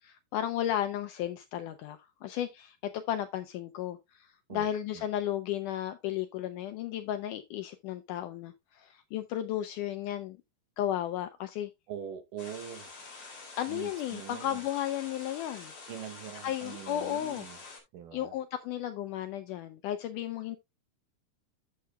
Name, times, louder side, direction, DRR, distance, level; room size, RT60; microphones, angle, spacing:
voice 1, 0.0-10.4 10.8-11.7 13.6-15.7 16.4-17.5 18.1-20.6, left 11 dB, 80° left, 1.8 m, -34 dB
voice 2, 11.9-12.9 13.7-14.6 15.9-17.6 17.9-18.4, right 9 dB, 70° right, 2.5 m, -43 dB
sound 1, 12.4-17.8, left 3 dB, 45° left, 4.9 m, -47 dB
13.0 x 6.7 x 2.3 m
omnidirectional pair, 4.2 m